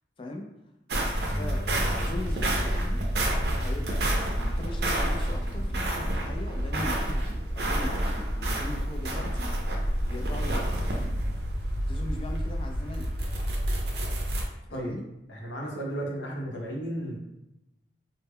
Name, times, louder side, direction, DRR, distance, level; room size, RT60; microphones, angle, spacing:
sound 1, 0.9-14.4, right 1 dB, 65° right, 0.5 m, -28 dB
voice 1, 1.2-3.0 3.5-10.8 11.9-13.1 14.7-15.0, left 2 dB, 30° left, 2 dB, 0.3 m, -40 dB
sound 2, 1.3-8.1, left 1 dB, 45° left, 1.1 m, -42 dB
sound 3, 4.5-7.6, right 3 dB, 10° left, 0.7 m, -50 dB
voice 2, 15.3-17.2, right 1 dB, 90° left, -1 dB, 0.7 m, -34 dB
2.1 x 2.0 x 3.5 m, 0.90 s
head